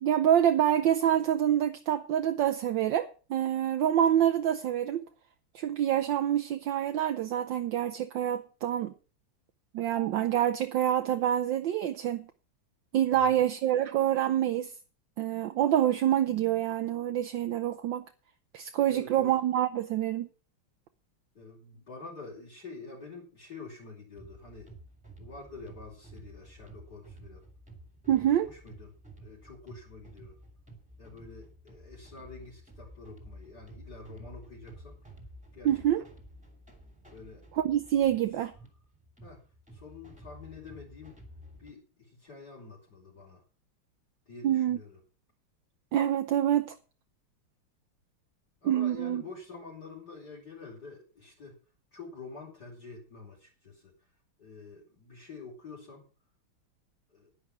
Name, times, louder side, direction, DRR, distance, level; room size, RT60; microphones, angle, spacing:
voice 1, 0.0-5.0 5.5-8.9 9.7-12.3 12.9-14.7 15.2-18.1 18.5-20.3 28.1-28.5 35.6-36.0 37.6-38.5 44.4-44.8 45.9-46.8 48.6-49.2, right 11 dB, 70° right, 1.4 m, -26 dB
voice 2, 13.1-13.5 18.9-19.3 21.3-24.7 25.2-27.4 28.4-30.4 31.0-35.0 35.5-35.7 36.0-36.1 37.1-37.4 39.2-39.4 39.7-41.2 41.6-43.4 44.3-45.0 48.6-51.6 51.9-53.9 54.4-56.1 57.1-57.3, left 4 dB, 50° left, 5.0 m, -47 dB
sound 1, 24.2-41.7, right 1 dB, 5° right, 2.8 m, -51 dB
11.0 x 10.5 x 5.9 m
omnidirectional pair, 2.3 m